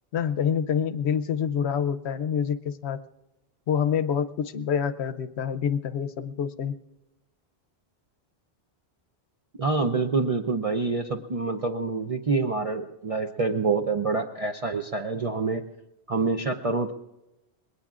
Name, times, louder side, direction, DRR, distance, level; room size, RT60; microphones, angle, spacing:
voice 1, 0.1-3.0 3.7-6.8, left 8 dB, 80° left, 13 dB, 1.0 m, -27 dB
voice 2, 9.6-15.7 16.1-16.9, right 4 dB, 40° right, 4 dB, 0.6 m, -26 dB
26.5 x 20.5 x 2.5 m, 0.96 s
omnidirectional pair, 1.1 m